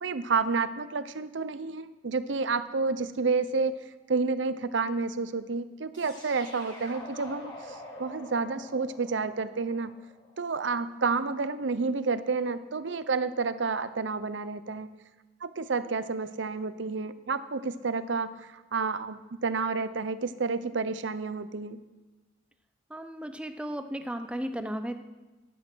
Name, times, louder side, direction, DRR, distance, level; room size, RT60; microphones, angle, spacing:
voice 1, 0.0-3.7 4.1-7.5 8.0-9.9 10.4-14.9 15.4-21.8, right 4 dB, 70° right, 13 dB, 0.7 m, -30 dB
sound 1, 5.9-10.9, left 1 dB, 25° left, 4.9 m, -46 dB
voice 2, 22.9-24.9, equal, 5° right, 7 dB, 0.7 m, -35 dB
15.0 x 11.0 x 6.2 m, 1.2 s
head